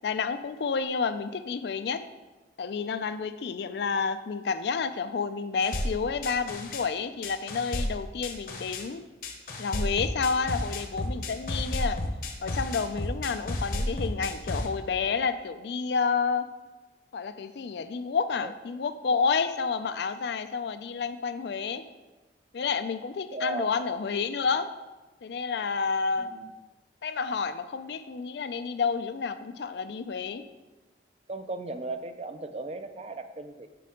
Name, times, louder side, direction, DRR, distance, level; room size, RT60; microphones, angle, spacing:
voice 1, 0.0-2.0 2.6-9.0 9.6-12.0 12.4-16.5 17.1-21.8 22.5-24.7 25.2-26.3 27.0-30.4, left 5 dB, 70° left, 11 dB, 0.4 m, -30 dB
sound 1, 5.6-6.8 7.2-8.8 9.2-14.7, left 1 dB, 50° left, 0.8 m, -32 dB
voice 2, 23.3-23.8 26.2-26.5 31.3-33.7, right 2 dB, 35° right, 9 dB, 0.4 m, -36 dB
6.8 x 6.1 x 3.6 m, 1.2 s
head